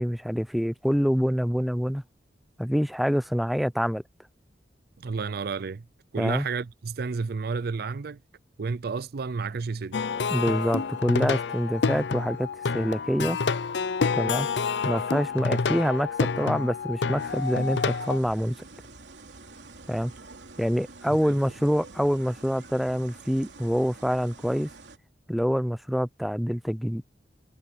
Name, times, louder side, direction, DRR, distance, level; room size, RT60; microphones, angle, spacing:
voice 1, 0.0-2.0 2.6-4.0 6.2-6.5 10.3-12.5 12.7-13.4 14.1-14.5 14.8-18.6 19.9-20.1 20.6-24.7 25.3-27.0, equal, ahead, 0.6 m, -26 dB
voice 2, 5.0-5.9 6.1-8.2 8.6-10.0 21.1-21.4, right 4 dB, 60° right, 0.5 m, -31 dB
Plucked string instrument, 9.9-18.2, left 5 dB, 75° left, 0.6 m, -28 dB
sound 1, 17.2-25.0, right 3 dB, 85° right, 3.0 m, -47 dB
head